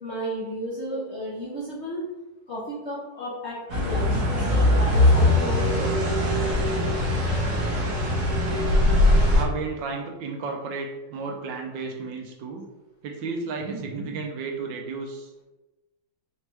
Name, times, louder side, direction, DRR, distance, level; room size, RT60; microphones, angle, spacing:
voice 1, 0.0-2.0 2.5-5.9, equal, 50° left, -8 dB, 0.8 m, -33 dB
sound 1, 3.7-9.4, left 1 dB, 55° right, 1.1 m, -21 dB
voice 2, 4.1-4.6 9.2-12.6 13.0-15.3, right 4 dB, 75° right, 1 dB, 1.2 m, -33 dB
4.2 x 3.2 x 3.0 m, 1.1 s
omnidirectional pair, 2.2 m